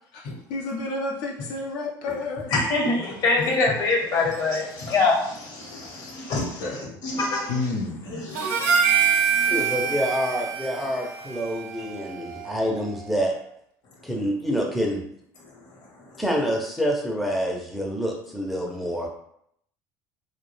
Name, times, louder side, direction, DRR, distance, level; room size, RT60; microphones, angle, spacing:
voice 1, 0.5-2.5 6.6-7.0 7.5-8.0, left 3 dB, 80° left, -2 dB, 0.5 m, -30 dB
voice 2, 2.5-7.6 8.1-9.7 10.8-10.9 16.1-16.2, left 3 dB, 55° left, -1 dB, 0.9 m, -26 dB
Harmonica, 8.4-12.8, right 7 dB, 90° right, 0.4 m, -25 dB
voice 3, 9.5-13.3 14.0-15.0 16.2-19.1, equal, ahead, 0 dB, 0.5 m, -27 dB
2.3 x 2.1 x 3.0 m, 0.71 s
supercardioid pair, 105°, 8 cm